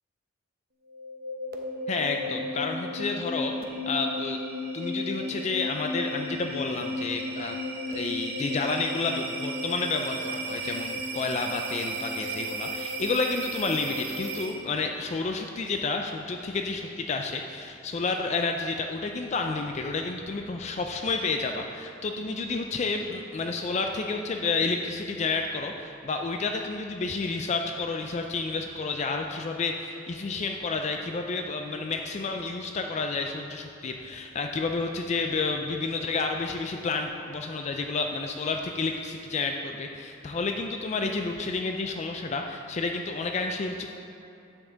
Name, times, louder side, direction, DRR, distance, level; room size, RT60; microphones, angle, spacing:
sound 1, 0.9-14.8, equal, 50° right, 0.8 m, -34 dB
voice 1, 1.9-3.5 3.9-4.4 4.7-7.6 7.9-43.9, left 3 dB, 35° left, 4 dB, 0.4 m, -30 dB
9.5 x 7.2 x 3.9 m, 2.9 s
head